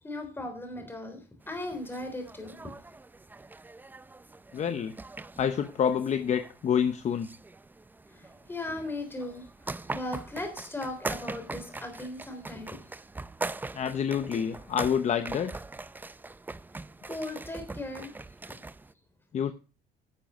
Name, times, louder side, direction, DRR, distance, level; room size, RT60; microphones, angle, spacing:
voice 1, 0.0-2.7 8.1-12.9 17.0-18.1, left 2 dB, 15° left, 5 dB, 3.7 m, -38 dB
sound 1, 1.4-18.9, right 3 dB, 10° right, 0.4 m, -42 dB
voice 2, 4.5-4.9 5.4-7.3 13.7-15.5 19.3-19.5, left 8 dB, 45° left, 9 dB, 0.8 m, -27 dB
11.0 x 7.1 x 5.2 m, 0.34 s
cardioid pair, 110°, 17 cm